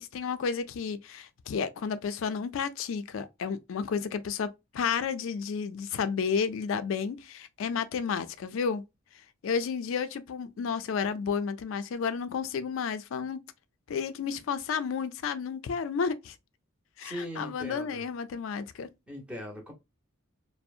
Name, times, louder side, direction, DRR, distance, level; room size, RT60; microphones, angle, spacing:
voice 1, 0.0-8.8 9.4-13.4 13.9-16.4 17.0-18.9, left 6 dB, 70° left, 0.3 m, -32 dB
voice 2, 17.0-18.0 19.1-19.7, equal, 5° right, 0.7 m, -39 dB
2.7 x 2.0 x 2.3 m
head